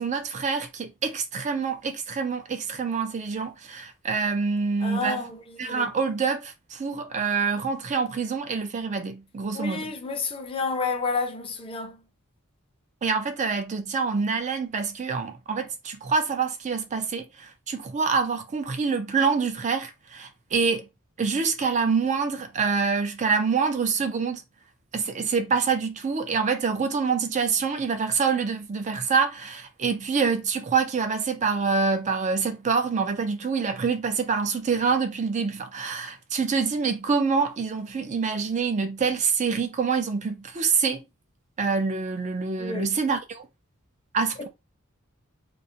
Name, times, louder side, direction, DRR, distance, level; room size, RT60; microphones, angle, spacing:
voice 1, 0.0-5.3 5.6-9.9 13.0-20.8 21.2-24.4 24.9-41.0 41.6-43.5 44.1-44.5, right 5 dB, 35° right, 0.4 m, -26 dB
voice 2, 4.8-5.9 9.5-12.0 42.6-42.9 44.4-44.5, left 4 dB, 25° left, 0.5 m, -30 dB
2.4 x 2.0 x 2.6 m
head